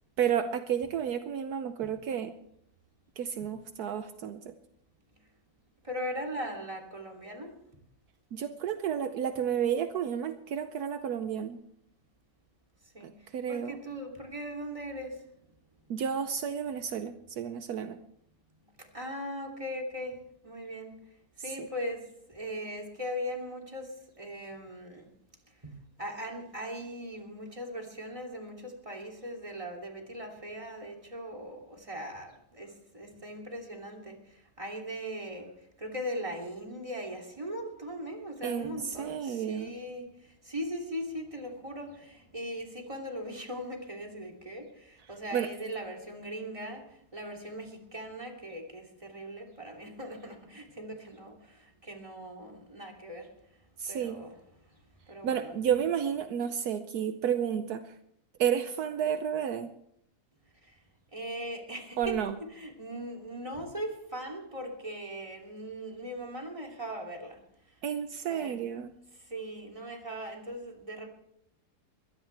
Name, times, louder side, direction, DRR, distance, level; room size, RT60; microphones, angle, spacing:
voice 1, 0.2-2.3 3.2-4.5 8.3-11.6 13.0-13.8 15.9-18.0 38.4-39.7 45.3-45.5 53.8-54.2 55.2-57.9 58.4-59.7 62.0-62.3 67.8-68.9, right 8 dB, 75° right, 9 dB, 1.3 m, -31 dB
voice 2, 5.8-7.5 12.9-13.1 13.5-15.2 18.8-20.2 20.4-21.0 21.4-23.9 24.2-25.1 25.6-25.7 26.0-35.5 35.8-40.1 40.4-46.8 47.1-53.3 53.9-54.4 55.1-55.6 60.6-60.7 61.1-67.4 68.3-68.6 69.2-71.1, equal, 20° right, 1 dB, 3.0 m, -39 dB
22.5 x 16.5 x 3.4 m, 0.74 s
omnidirectional pair, 1.7 m